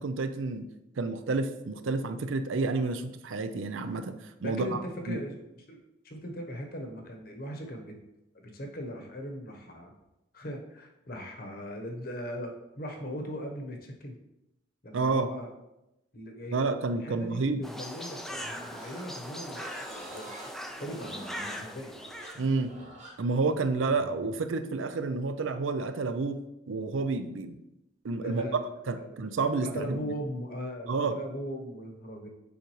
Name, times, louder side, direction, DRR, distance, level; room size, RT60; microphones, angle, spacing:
voice 1, 0.0-0.7 1.0-4.7 5.1-5.2 14.9-15.3 16.5-17.6 22.4-22.7 23.2-27.6 28.0-28.4 28.9-30.0 30.9-31.1, right 3 dB, 85° right, 10 dB, 0.5 m, -30 dB
voice 2, 4.4-5.8 6.0-8.0 8.3-9.9 10.3-14.2 14.8-15.5 16.1-16.6 17.0-20.3 20.8-22.0 22.3-22.5 28.1-28.7 29.0-29.2 29.6-32.3, equal, 50° left, 3 dB, 1.0 m, -39 dB
sound 1, 17.6-22.5, equal, ahead, 0.3 m, -40 dB
Livestock farm animals working animals, 18.3-24.3, right 1 dB, 35° right, 1.2 m, -47 dB
7.1 x 5.1 x 3.1 m, 0.90 s
head